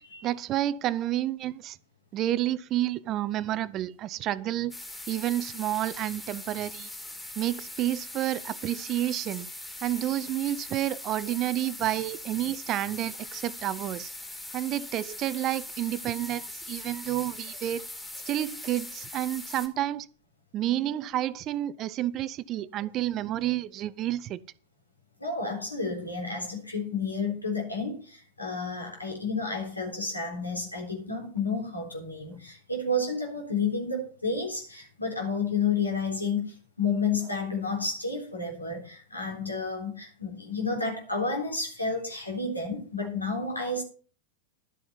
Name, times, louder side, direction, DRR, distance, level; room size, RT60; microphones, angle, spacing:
voice 1, 0.0-1.8 2.1-4.7 5.1-6.9 7.4-9.5 9.8-14.1 14.5-17.9 18.2-20.1 20.5-24.4, right 13 dB, 35° right, 0.5 m, -30 dB
sound 1, 4.7-19.7, left 1 dB, 5° left, 2.5 m, -41 dB
voice 2, 25.2-43.8, left 4 dB, 85° left, 3.8 m, -31 dB
12.0 x 7.8 x 5.6 m
figure-of-eight pair, 90°, 0 cm